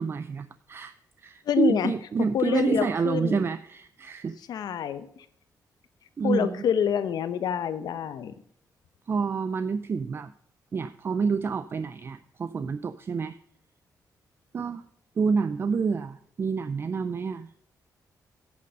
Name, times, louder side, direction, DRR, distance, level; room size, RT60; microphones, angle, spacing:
voice 1, 0.0-4.3 6.2-6.6 9.1-10.3 10.7-13.4 14.5-14.8 15.2-17.5, right 5 dB, 35° right, 12 dB, 0.4 m, -28 dB
voice 2, 1.5-1.9 2.3-3.5 4.5-5.2 6.2-8.3, left 8 dB, 80° left, 12 dB, 0.9 m, -27 dB
10.5 x 6.6 x 5.2 m, 0.67 s
wide cardioid pair, 150°, 7 cm